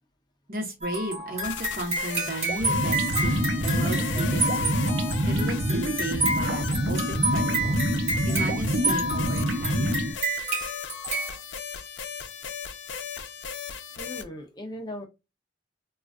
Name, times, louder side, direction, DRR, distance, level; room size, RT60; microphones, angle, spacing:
voice 1, 0.5-4.8 5.2-10.1, right 1 dB, 50° right, 1 dB, 1.1 m, -35 dB
sound 1, 0.8-11.4, right 1 dB, 30° right, 1.4 m, -30 dB
sound 2, 1.4-14.2, left 7 dB, 70° left, 0.5 m, -37 dB
sound 3, 2.5-10.1, right 1 dB, 90° right, 0.7 m, -26 dB
voice 2, 14.0-15.0, left 1 dB, 20° left, 3 dB, 0.6 m, -38 dB
3.8 x 2.4 x 2.3 m, 0.24 s
head